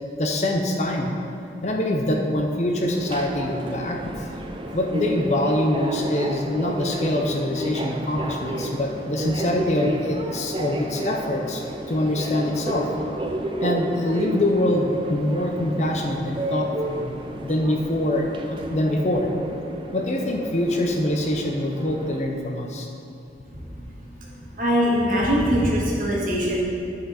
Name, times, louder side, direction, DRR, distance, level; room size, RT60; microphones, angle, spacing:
voice 1, 0.2-1.1 1.6-4.3 4.7-12.9 13.6-17.1 17.4-19.3 19.9-22.9, left 1 dB, 40° left, 1 dB, 0.6 m, -24 dB
Subway metro underground, 2.8-22.2, right 1 dB, 30° right, 0.5 m, -32 dB
voice 2, 24.6-26.6, equal, 50° right, -4 dB, 1.7 m, -21 dB
10.5 x 5.7 x 4.2 m, 2.7 s
head